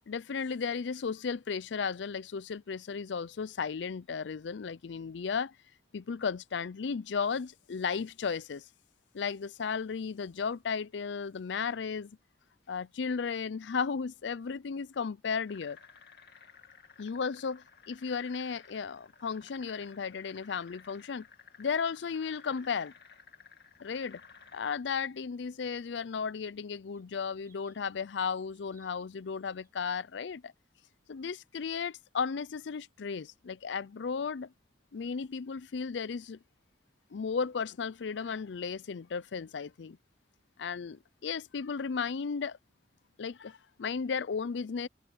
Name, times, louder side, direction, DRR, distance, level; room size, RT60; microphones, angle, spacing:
voice 1, 0.1-5.6 5.9-8.7 9.1-12.2 12.7-15.8 17.0-17.6 17.9-21.2 21.6-22.9 23.8-24.2 24.5-30.5 31.1-34.5 34.9-36.4 37.1-40.0 40.6-42.6 43.2-44.9, left 5 dB, 75° left, 0.5 m, -34 dB
sound 1, 15.5-24.8, left 5 dB, 60° left, 2.8 m, -56 dB
sound 2, 23.7-30.0, right 3 dB, 20° right, 3.3 m, -70 dB
head